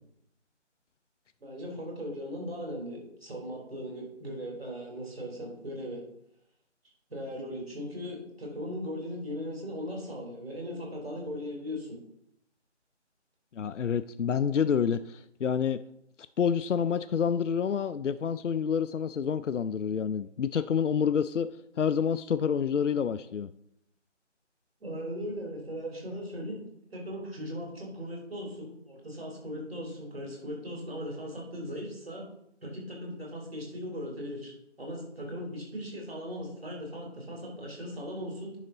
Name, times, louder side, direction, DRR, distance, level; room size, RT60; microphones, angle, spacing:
voice 1, 1.4-6.0 7.1-12.0 24.8-26.6 26.9-32.3 32.6-34.5 34.8-38.6, equal, 55° right, -1 dB, 3.7 m, -38 dB
voice 2, 13.5-15.8 16.4-21.5 21.8-23.5, left 7 dB, 80° left, 13 dB, 0.5 m, -28 dB
10.0 x 5.7 x 4.0 m, 0.76 s
figure-of-eight pair, 175°, 36 cm